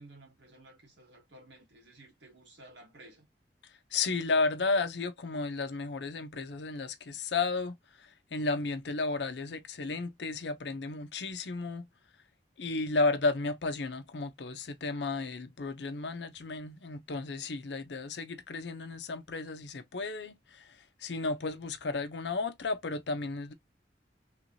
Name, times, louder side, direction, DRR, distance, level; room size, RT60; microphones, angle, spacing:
voice 1, 0.0-3.3, right 1 dB, 90° right, 1.6 m, -54 dB
voice 2, 3.9-11.9 12.6-23.5, left 3 dB, 75° left, 0.6 m, -33 dB
3.2 x 2.7 x 2.9 m
head